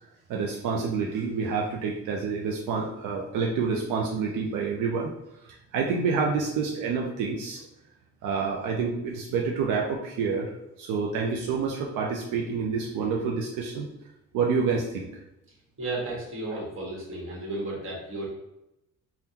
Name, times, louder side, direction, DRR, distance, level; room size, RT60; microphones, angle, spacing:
voice 1, 0.3-5.1 5.4-7.6 8.2-10.5 10.8-13.9 14.3-15.2, right 5 dB, 90° right, -1 dB, 0.5 m, -28 dB
voice 2, 15.8-18.3, right 2 dB, 45° right, -3 dB, 1.4 m, -33 dB
3.5 x 2.3 x 2.7 m, 0.88 s
cardioid pair, 90°, 30 cm